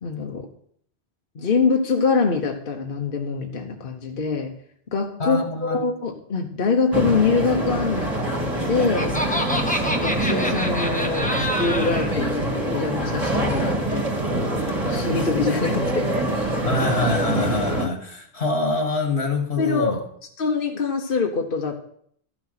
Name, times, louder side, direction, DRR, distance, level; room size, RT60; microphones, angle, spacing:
voice 1, 0.0-0.5 1.3-4.5 4.9-8.3 8.6-9.1 9.8-14.4 14.8-16.7 19.6-20.0 20.4-21.7, left 4 dB, 60° left, 2 dB, 1.2 m, -24 dB
voice 2, 5.2-5.8 16.7-20.0, left 2 dB, 85° left, 3 dB, 2.2 m, -25 dB
sound 1, 6.9-17.9, right 1 dB, 35° right, 2.1 m, -25 dB
Laughter, 8.3-12.1, equal, 10° left, 1.0 m, -27 dB
13.5 x 6.1 x 5.8 m, 0.65 s
omnidirectional pair, 1.1 m